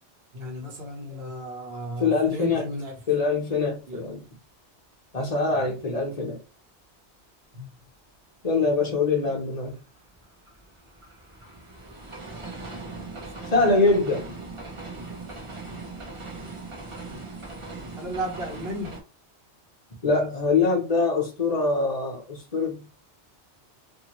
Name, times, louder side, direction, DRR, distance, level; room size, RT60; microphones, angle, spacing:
voice 1, 0.3-3.0 3.9-4.1 5.5-5.7 7.5-7.7 12.8-13.4 18.0-18.9, right 1 dB, 60° right, 1.1 m, -35 dB
voice 2, 2.0-2.6 3.1-4.2 5.1-6.4 8.4-9.7 13.5-14.3 20.0-22.9, left 3 dB, 35° left, 0.9 m, -23 dB
sound 1, 9.7-19.0, right 3 dB, 30° right, 0.8 m, -39 dB
2.7 x 2.6 x 2.9 m
omnidirectional pair, 1.2 m